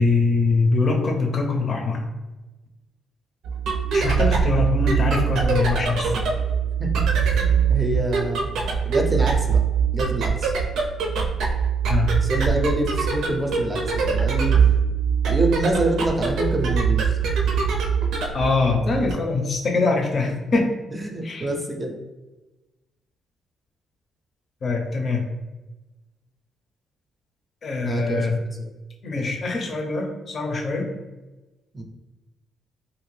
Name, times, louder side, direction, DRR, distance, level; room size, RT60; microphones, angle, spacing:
voice 1, 0.0-2.1 3.9-6.2 11.9-12.1 18.3-20.7 21.2-21.5 24.6-25.3 27.6-28.4 29.0-30.9, left 3 dB, 45° left, 2 dB, 0.6 m, -23 dB
sound 1, 3.4-19.1, right 6 dB, 80° right, 0.5 m, -22 dB
voice 2, 7.1-8.5 8.8-9.6 9.9-10.5 12.2-14.5 15.2-17.2 20.9-22.0 27.8-28.3 28.6-28.7 29.2-29.3 31.7-31.8, right 1 dB, 20° right, 2 dB, 0.5 m, -26 dB
2.8 x 2.6 x 3.2 m, 1.1 s
cardioid pair, 90°, 0 cm